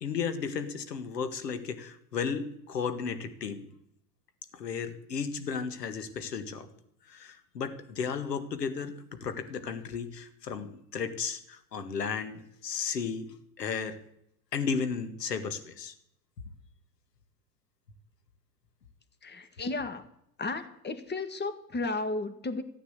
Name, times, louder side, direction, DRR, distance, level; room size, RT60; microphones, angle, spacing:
voice 1, 0.0-3.7 4.5-6.7 7.1-13.3 13.6-14.0 14.5-15.9, left 6 dB, 90° left, 9 dB, 1.9 m, -34 dB
voice 2, 19.2-20.0 20.4-22.6, left 3 dB, 20° left, 11 dB, 1.8 m, -33 dB
14.0 x 9.2 x 8.2 m, 0.74 s
hypercardioid pair, 90°, 47 cm